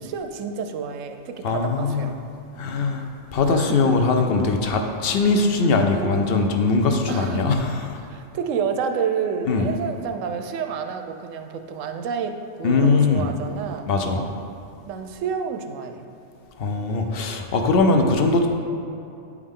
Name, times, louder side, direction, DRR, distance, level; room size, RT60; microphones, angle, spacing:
voice 1, 0.0-2.2 3.5-3.9 7.1-7.6 8.0-13.9 14.9-16.1, right 6 dB, 90° right, 6 dB, 1.0 m, -29 dB
voice 2, 1.4-2.1 2.6-3.0 3.3-7.9 9.5-9.7 12.6-13.2 13.9-14.2 16.6-18.5, left 3 dB, 60° left, 4 dB, 0.8 m, -21 dB
9.3 x 4.8 x 3.7 m, 2.7 s
omnidirectional pair, 1.3 m